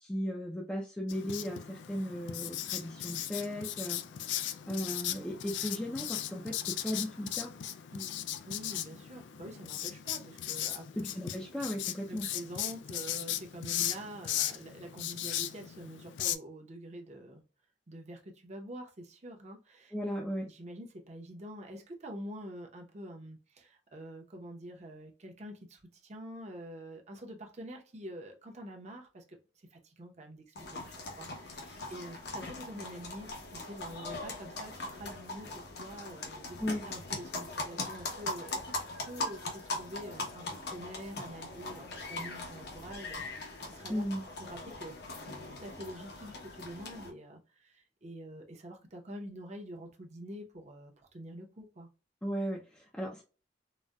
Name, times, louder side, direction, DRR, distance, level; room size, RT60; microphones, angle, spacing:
voice 1, 0.0-7.5 11.0-12.3 19.9-20.5 36.6-36.9 43.9-44.2 52.2-53.2, equal, 5° left, 0.4 m, -36 dB
Writing, 1.1-16.3, left 11 dB, 85° left, 0.3 m, -37 dB
voice 2, 7.9-10.9 12.1-17.4 17.9-19.9 20.5-36.6 36.8-44.0 44.4-44.9 45.2-45.3 45.6-51.9, right 1 dB, 40° right, 0.7 m, -46 dB
sound 1, 30.6-47.1, left 2 dB, 65° left, 0.8 m, -41 dB
4.0 x 2.1 x 2.2 m
head